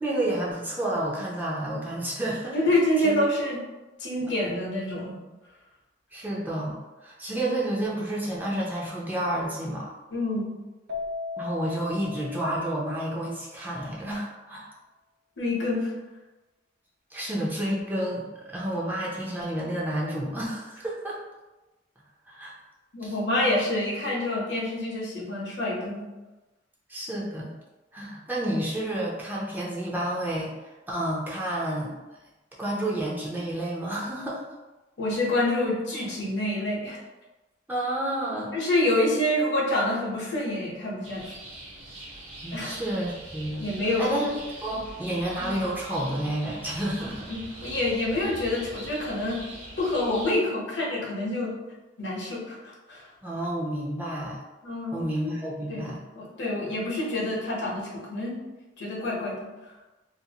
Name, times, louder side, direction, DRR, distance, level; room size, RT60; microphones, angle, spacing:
voice 1, 0.0-2.7 3.0-3.2 6.1-6.8 7.0-9.9 11.4-14.7 17.1-21.2 22.3-22.5 23.0-23.1 26.9-27.5 27.9-31.9 32.6-34.4 37.7-38.5 42.4-43.7 44.0-44.3 44.6-47.3 53.2-54.4 54.9-56.0, right 1 dB, 10° right, -5 dB, 0.5 m, -30 dB
voice 2, 2.5-3.6 4.0-5.2 10.1-10.5 15.4-15.9 22.9-26.1 35.0-37.0 38.5-41.3 42.5-42.7 43.6-44.1 44.7-44.8 45.4-45.5 47.3-49.4 49.8-51.5 52.0-53.0 54.6-55.0 55.7-55.9 56.2-58.4 58.8-59.5, left 1 dB, 70° left, -4 dB, 0.8 m, -27 dB
Keyboard (musical), 10.9-13.4, left 5 dB, 65° right, 0.4 m, -37 dB
sound 1, 41.0-50.4, right 1 dB, 35° right, 0.8 m, -43 dB
2.5 x 2.4 x 2.7 m, 1.1 s
head